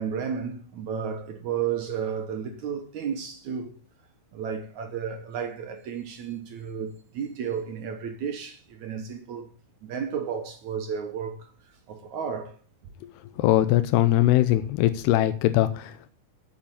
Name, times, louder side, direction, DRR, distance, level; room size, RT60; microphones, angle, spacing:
voice 1, 0.0-3.7 4.3-9.5 9.8-11.5 11.9-12.6, right 7 dB, 65° right, 2.0 m, -32 dB
voice 2, 13.4-16.1, left 14 dB, 90° left, 2.8 m, -21 dB
8.8 x 7.9 x 8.8 m
omnidirectional pair, 4.6 m